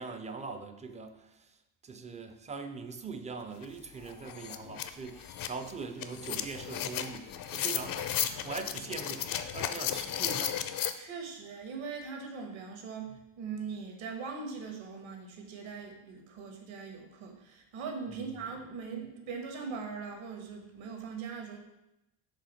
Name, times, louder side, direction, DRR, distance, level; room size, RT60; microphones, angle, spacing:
voice 1, 0.0-1.5 1.8-10.7 18.1-18.5, right 4 dB, 15° right, 8 dB, 0.3 m, -42 dB
sound 1, 3.6-3.7 4.0-10.9, left 10 dB, 45° left, 0.5 m, -35 dB
voice 2, 11.0-21.6, right 5 dB, 70° right, 3 dB, 1.4 m, -41 dB
5.1 x 3.5 x 5.6 m, 0.89 s
cardioid pair, 115°, 48 cm